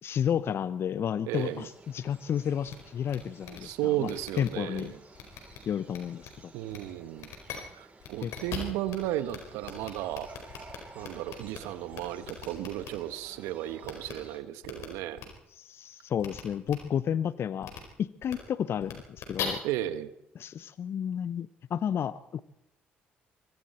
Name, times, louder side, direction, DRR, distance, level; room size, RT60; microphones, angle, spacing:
voice 1, 0.0-4.1 4.4-4.9 5.7-6.5 8.2-8.3 15.6-17.7 18.0-19.6 20.4-22.4, left 8 dB, 55° left, 16 dB, 0.8 m, -31 dB
sound 1, 1.3-14.4, right 3 dB, 30° right, 6.8 m, -54 dB
voice 2, 1.3-1.7 3.5-5.0 6.5-7.3 7.7-10.3 10.9-15.2 19.6-20.1, right 13 dB, 75° right, 12 dB, 1.3 m, -34 dB
sound 2, 2.7-2.8 3.1-3.2 3.4-3.6 4.0-4.8 5.1-5.6 5.9-6.3 6.7-6.8 7.2-7.6 8.0-9.0 9.3-9.4 9.6-11.6 11.9-12.9 13.8-14.1 14.6-14.9 15.2-15.3 16.2-16.4 16.7-16.8 17.6-17.8 18.2-18.3 18.8-19.4, left 9 dB, 70° left, 4.7 m, -40 dB
25.5 x 23.5 x 4.4 m, 0.79 s
hypercardioid pair, 50°, 5 cm